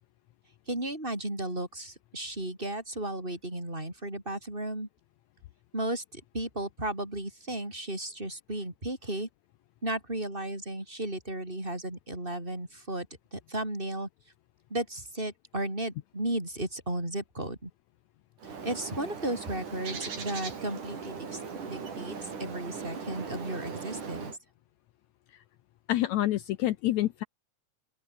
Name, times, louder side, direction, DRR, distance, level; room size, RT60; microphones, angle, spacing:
voice 1, 0.7-4.9 5.7-9.3 9.8-14.1 14.7-17.7 18.4-21.4 21.7-24.4, right 1 dB, 15° right, 8.1 m, -34 dB
Bird, 18.4-24.4, right 5 dB, 65° right, 5.8 m, -39 dB
voice 2, 25.9-27.2, left 14 dB, 75° left, 1.9 m, -27 dB
open air
omnidirectional pair, 3.8 m